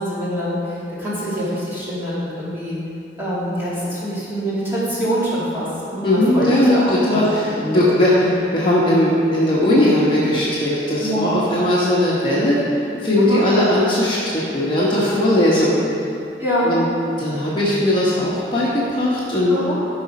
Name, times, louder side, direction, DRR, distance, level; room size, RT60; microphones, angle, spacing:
voice 1, 0.0-2.8 3.2-7.2 7.6-7.8 8.2-8.3 11.0-11.2 13.2-13.4 16.4-16.8 19.5-19.8, equal, 15° right, -10 dB, 2.4 m, -24 dB
voice 2, 6.0-12.6 13.0-15.8 16.6-16.8 17.2-19.6, left 1 dB, 30° left, -7 dB, 1.3 m, -18 dB
13.0 x 5.0 x 5.4 m, 2.6 s
head